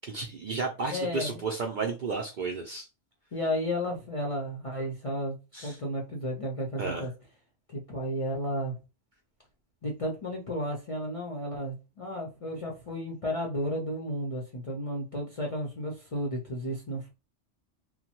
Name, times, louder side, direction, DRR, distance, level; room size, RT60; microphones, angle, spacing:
voice 1, 0.1-2.9 5.5-5.8 6.8-7.1, right 4 dB, 60° right, 0.5 m, -32 dB
voice 2, 0.9-1.4 3.3-5.4 5.6-7.1 7.7-8.7 9.8-17.1, equal, 40° left, 0.5 m, -33 dB
3.0 x 2.1 x 2.9 m
omnidirectional pair, 1.2 m